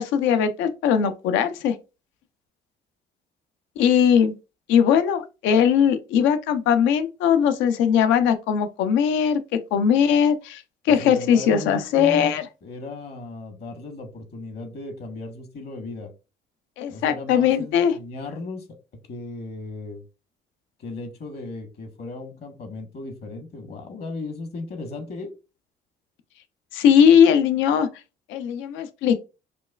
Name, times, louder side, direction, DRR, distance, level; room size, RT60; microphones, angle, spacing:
voice 1, 0.0-1.7 3.8-4.3 4.7-12.4 16.8-17.9 26.7-27.9 28.3-29.2, left 8 dB, 85° left, 0.5 m, -20 dB
voice 2, 10.9-12.3 12.6-16.1 16.9-18.8 19.1-20.0 20.8-25.3, left 3 dB, 55° left, 1.2 m, -36 dB
5.1 x 2.3 x 2.3 m
supercardioid pair, 70°, 19 cm